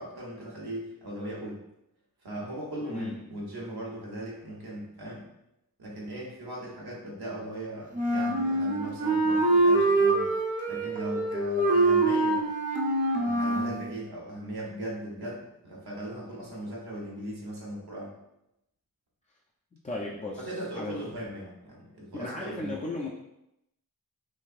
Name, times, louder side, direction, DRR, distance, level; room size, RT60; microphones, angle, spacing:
voice 1, 0.0-1.6 2.2-5.3 5.8-10.3 10.7-12.5 13.1-18.1 20.4-22.7, right 1 dB, 85° right, -3 dB, 1.1 m, -38 dB
voice 2, 2.9-3.4 19.8-20.5 20.7-21.0 22.1-23.1, left 2 dB, 20° left, -2 dB, 0.3 m, -35 dB
Wind instrument woodwind instrument, 7.9-13.8, right 2 dB, 20° right, 0.6 m, -24 dB
4.0 x 2.6 x 2.4 m, 0.85 s
wide cardioid pair, 70°, 37 cm